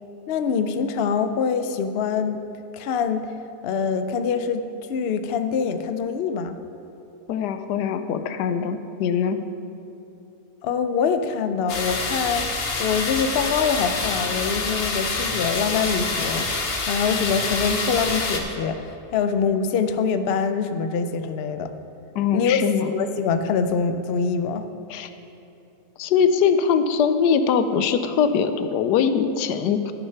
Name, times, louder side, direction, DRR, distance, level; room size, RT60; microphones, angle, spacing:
voice 1, 0.3-2.4 2.7-3.3 3.6-6.6 10.6-12.5 12.8-21.7 22.3-24.6, left 6 dB, 70° left, 9 dB, 0.5 m, -24 dB
voice 2, 7.3-9.4 22.2-22.9 24.9-25.1 26.0-29.9, left 7 dB, 90° left, 9 dB, 1.2 m, -22 dB
sound 1, 11.7-18.4, left 3 dB, 45° left, 1.0 m, -26 dB
12.0 x 6.5 x 5.7 m, 2.9 s
omnidirectional pair, 1.7 m